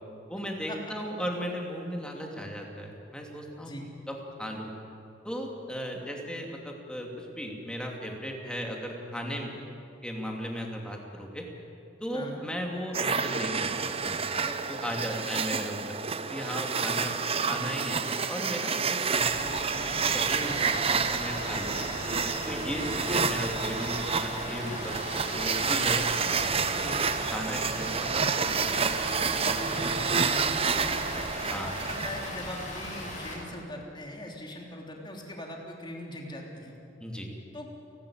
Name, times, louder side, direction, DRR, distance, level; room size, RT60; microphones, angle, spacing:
voice 1, 0.3-3.7 4.1-4.7 5.2-9.5 10.0-11.5 12.0-16.0 16.3-17.2 17.5-18.0 18.3-21.8 22.5-26.9 27.3-27.9 28.1-28.5 31.5-31.7 37.0-37.3, equal, 5° left, 1 dB, 2.6 m, -36 dB
sound 1, 12.9-32.3, right 5 dB, 30° right, 0.8 m, -29 dB
voice 2, 17.3-17.7 26.7-27.0 30.0-31.0 31.4-36.7 37.5-37.7, left 1 dB, 25° left, 0 dB, 3.3 m, -41 dB
Water, 19.2-33.4, left 1 dB, 40° left, 4.9 m, -38 dB
30.0 x 12.5 x 8.8 m, 2.7 s
head